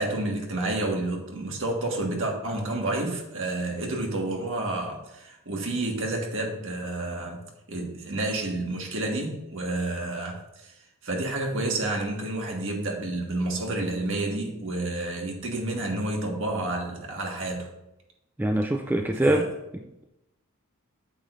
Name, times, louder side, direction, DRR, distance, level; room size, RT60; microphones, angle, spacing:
voice 1, 0.0-7.4 7.7-10.7 11.0-17.7 19.2-19.5, right 2 dB, 60° right, 1.6 m, -30 dB
voice 2, 18.4-19.5 19.7-20.1, right 1 dB, 10° right, 0.3 m, -24 dB
8.7 x 8.1 x 2.6 m
head